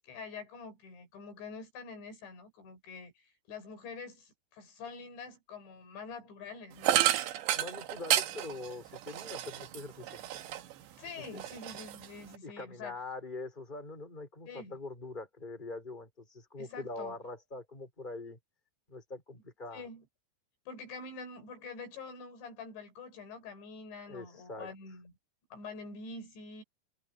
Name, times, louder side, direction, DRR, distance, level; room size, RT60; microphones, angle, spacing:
voice 1, 0.0-7.2 11.0-13.0 14.5-14.8 16.6-17.2 19.7-20.0 20.7-25.1 25.5-26.6, left 4 dB, 90° left, 7.7 m, -46 dB
sound 1, 6.8-10.8 11.2-12.4, right 13 dB, 90° right, 3.6 m, -31 dB
voice 2, 7.5-10.2 11.2-11.4 12.4-18.4 18.9-19.8 24.1-24.7, left 2 dB, 10° left, 5.8 m, -43 dB
omnidirectional pair, 5.0 m